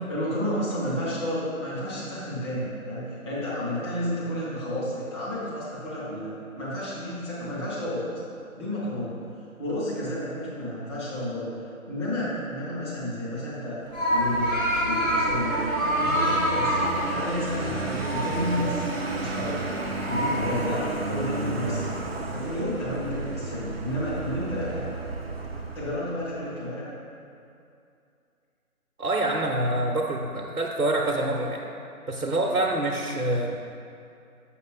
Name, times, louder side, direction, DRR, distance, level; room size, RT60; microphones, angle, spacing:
voice 1, 0.1-6.3 6.5-8.2 8.6-9.1 9.6-11.5 11.9-13.8 14.1-15.6 16.0-18.8 19.2-20.8 21.1-21.8 22.2-24.9 25.7-26.9, equal, 20° left, -9 dB, 1.3 m, -31 dB
sound 1, 13.9-20.4, equal, ahead, 1.0 m, -27 dB
Vehicle, 13.9-26.1, right 3 dB, 45° right, 0.5 m, -33 dB
voice 2, 29.0-31.6 32.1-33.6, right 1 dB, 85° right, -1 dB, 0.9 m, -26 dB
6.6 x 6.3 x 3.7 m, 2.5 s
figure-of-eight pair, 145°, 43 cm